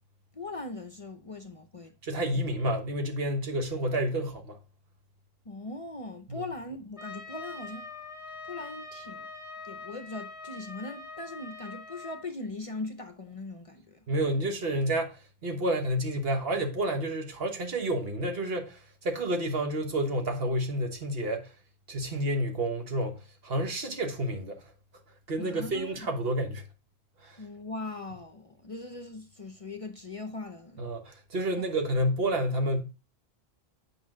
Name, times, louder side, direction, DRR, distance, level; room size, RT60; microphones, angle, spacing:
voice 1, 0.3-1.9 2.3-2.5 5.4-7.9 8.4-9.3 9.6-14.0 25.4-26.1 27.4-30.9 31.6-31.7, left 2 dB, 40° left, 0.6 m, -40 dB
voice 2, 2.0-4.6 6.3-6.4 14.1-21.5 21.9-24.6 25.3-26.6 27.2-27.4 30.8-32.8, right 1 dB, 65° right, 1.4 m, -30 dB
Trumpet, 7.0-12.3, left 3 dB, 20° left, 1.3 m, -43 dB
8.5 x 5.0 x 3.7 m
omnidirectional pair, 1.1 m